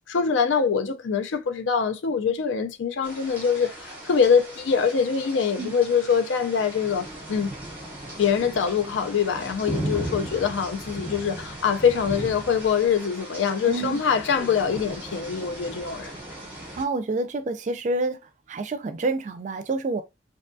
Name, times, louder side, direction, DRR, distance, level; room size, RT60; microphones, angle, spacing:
voice 1, 0.1-7.5 8.2-16.1, left 6 dB, 80° left, 0.4 m, -24 dB
sound 1, 3.0-16.8, right 1 dB, 10° right, 0.8 m, -37 dB
voice 2, 13.6-14.0 16.8-18.2 18.5-20.0, right 2 dB, 40° right, 0.3 m, -28 dB
2.6 x 2.2 x 2.6 m
head